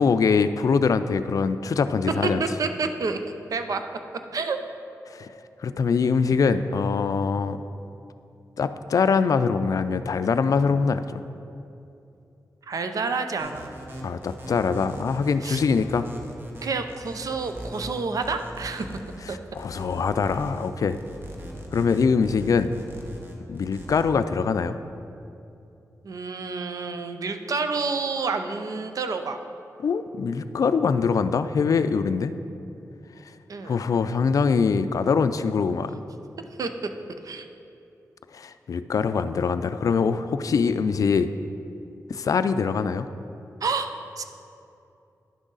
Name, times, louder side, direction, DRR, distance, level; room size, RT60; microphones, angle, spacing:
voice 1, 0.0-2.4 5.1-5.3 5.6-7.6 8.6-11.2 14.0-16.1 19.6-21.0 21.7-22.7 23.5-24.8 29.8-32.3 33.7-36.0 38.3-41.3 42.1-43.1, left 5 dB, 65° left, 11 dB, 0.3 m, -23 dB
voice 2, 2.4-3.8 4.3-4.6 12.7-13.7 15.4-15.6 16.6-19.0 19.3-19.4 26.0-29.4 33.5-33.8 36.6-36.9 37.2-37.5 43.6-44.2, right 4 dB, 65° right, 7 dB, 0.6 m, -29 dB
sound 1, 13.4-24.0, equal, 35° right, 1.1 m, -40 dB
10.5 x 6.2 x 4.0 m, 2.7 s
wide cardioid pair, 85°, 6 cm